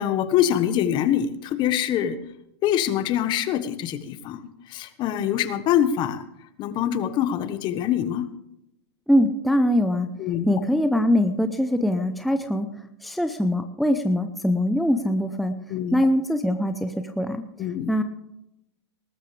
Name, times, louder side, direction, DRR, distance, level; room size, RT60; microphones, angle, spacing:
voice 1, 0.0-2.2 2.6-4.4 4.7-6.2 6.6-8.3 10.2-10.5 15.7-16.1 17.6-17.9, left 10 dB, 35° left, 12 dB, 1.2 m, -24 dB
voice 2, 9.1-10.1 10.5-12.7 13.0-15.5 15.9-17.4 17.9-18.0, equal, ahead, 7 dB, 0.7 m, -22 dB
19.5 x 13.0 x 3.4 m, 0.82 s
hypercardioid pair, 135°, 14 cm